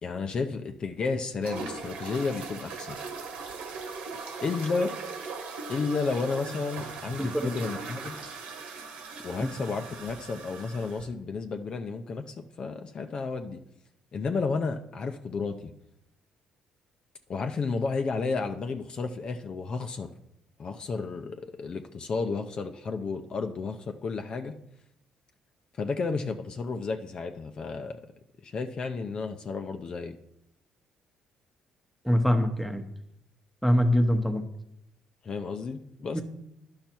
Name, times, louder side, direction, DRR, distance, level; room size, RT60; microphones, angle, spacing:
voice 1, 0.0-3.0 4.4-4.9 5.7-8.2 9.2-13.6 14.1-15.7 17.3-20.1 20.6-24.6 25.8-28.0 28.4-30.2 35.2-36.2, left 4 dB, 45° left, 5 dB, 0.6 m, -32 dB
sound 1, 1.4-11.0, right 4 dB, 85° right, 1.5 m, -39 dB
voice 2, 7.2-7.5 9.4-9.5 32.0-32.8 33.6-34.4 36.1-36.2, equal, ahead, 6 dB, 0.9 m, -24 dB
10.5 x 5.7 x 4.4 m, 0.79 s
cardioid pair, 90°, 2 cm